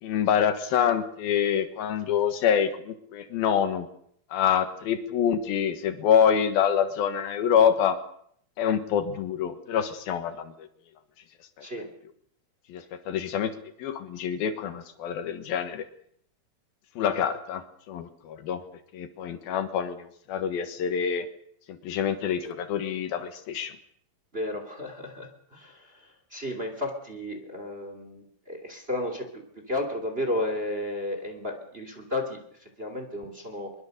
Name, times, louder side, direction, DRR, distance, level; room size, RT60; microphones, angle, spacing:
voice 1, 0.0-3.9 4.3-8.0 8.6-10.5 12.7-13.5 13.8-15.8 17.0-18.6 18.9-21.3 21.7-23.7, left 8 dB, 75° left, 9 dB, 3.3 m, -26 dB
voice 2, 24.3-33.7, left 1 dB, 15° right, 4 dB, 2.7 m, -33 dB
23.0 x 23.0 x 6.7 m, 0.65 s
omnidirectional pair, 4.3 m